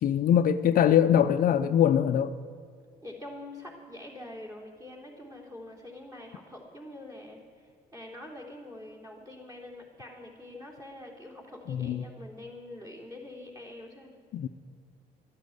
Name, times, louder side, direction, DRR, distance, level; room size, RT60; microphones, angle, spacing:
voice 1, 0.0-2.3 11.7-12.0 14.3-14.5, left 9 dB, 55° left, 9 dB, 0.6 m, -23 dB
voice 2, 3.0-14.1, left 1 dB, 20° right, -1 dB, 3.4 m, -45 dB
13.0 x 9.7 x 7.9 m, 2.2 s
cardioid pair, 110°, 17 cm